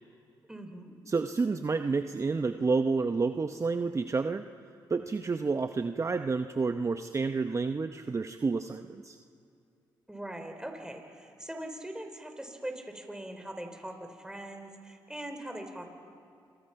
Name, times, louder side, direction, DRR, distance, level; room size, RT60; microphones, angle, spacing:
voice 1, 0.5-1.0 10.1-15.8, right 1 dB, 10° right, 5 dB, 4.0 m, -41 dB
voice 2, 1.1-4.4 4.9-9.2, right 4 dB, 35° right, 8 dB, 0.8 m, -29 dB
27.5 x 24.0 x 5.8 m, 2.6 s
supercardioid pair, 60°, 9 cm